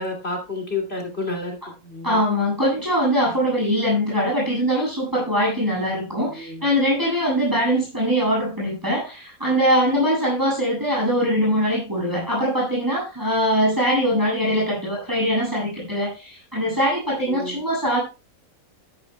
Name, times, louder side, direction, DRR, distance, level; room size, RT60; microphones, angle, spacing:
voice 1, 0.0-1.6 1.8-2.2 6.3-6.7 17.3-17.6, left 3 dB, 45° left, 0 dB, 3.2 m, -30 dB
voice 2, 2.0-18.0, equal, 15° right, -5 dB, 8.0 m, -22 dB
13.5 x 12.5 x 2.3 m, 0.29 s
omnidirectional pair, 1.5 m